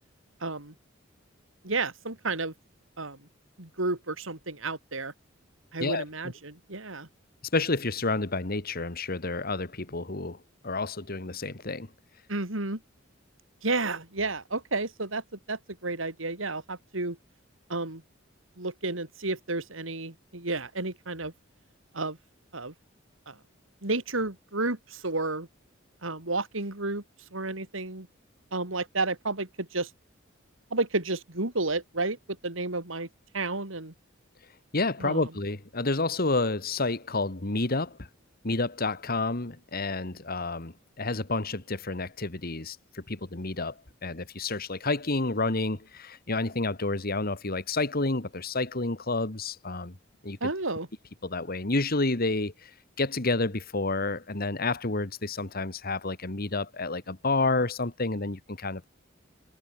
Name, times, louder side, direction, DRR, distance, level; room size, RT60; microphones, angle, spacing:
voice 1, 0.4-0.7 1.6-2.5 3.0-3.2 3.6-5.1 5.7-7.1 12.3-12.8 13.6-17.2 17.7-18.0 18.6-21.3 21.9-22.2 22.5-22.7 23.3-23.4 23.8-25.5 26.0-27.0 27.3-28.1 28.5-29.9 30.7-32.2 32.4-33.1 33.3-33.9 35.0-35.3 50.4-50.9, right 3 dB, 90° right, 3.7 m, -31 dB
voice 2, 7.5-10.4 10.6-11.9 34.7-38.0 38.4-43.7 44.0-49.9 50.2-50.4 51.2-52.7 53.0-58.9, left 3 dB, 50° left, 2.0 m, -29 dB
head